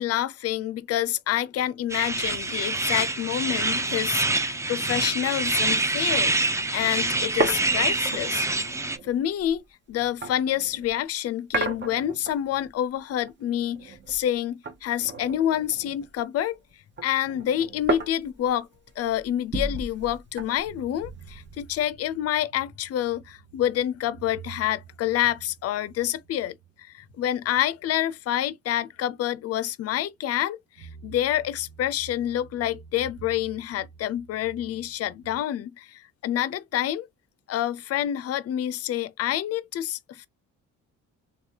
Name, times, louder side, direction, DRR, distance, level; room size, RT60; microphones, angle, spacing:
voice 1, 0.0-6.3 6.7-8.5 9.0-9.6 9.9-16.6 17.0-18.7 19.0-26.6 26.9-37.1 37.5-40.3, left 12 dB, 55° left, 0.4 m, -27 dB
Lodi garden birds, 1.9-9.0, right 2 dB, 10° right, 0.4 m, -26 dB
sound 1, 5.7-5.9 6.2-6.3 6.6-10.9 11.5-12.7 13.0-14.4 14.6-16.4 16.7-21.9, right 3 dB, 40° right, 0.9 m, -34 dB
sound 2, 20.0-28.5 28.9-29.0 30.8-35.4, right 6 dB, 75° right, 0.7 m, -49 dB
3.2 x 2.3 x 2.7 m
cardioid pair, 90°, 30 cm